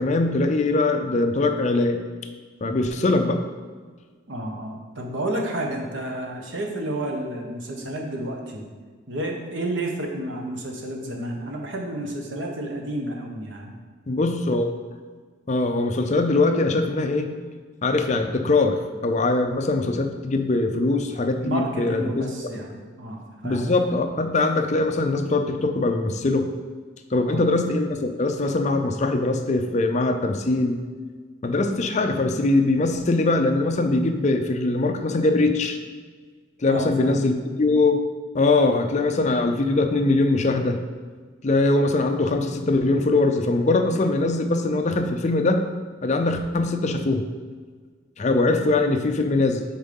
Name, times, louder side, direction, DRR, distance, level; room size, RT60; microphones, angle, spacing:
voice 1, 0.0-2.0 2.6-3.4 14.1-14.7 15.5-17.3 17.8-22.3 23.4-26.5 27.1-30.8 31.4-35.8 36.6-38.0 38.3-40.8 41.4-45.7 46.0-47.3 48.2-49.6, left 2 dB, 35° left, 6 dB, 0.5 m, -22 dB
voice 2, 4.3-8.7 9.1-13.7 21.4-23.7 27.2-27.4 36.7-37.2, right 1 dB, 70° right, 1 dB, 1.1 m, -31 dB
5.0 x 4.4 x 5.3 m, 1.5 s
head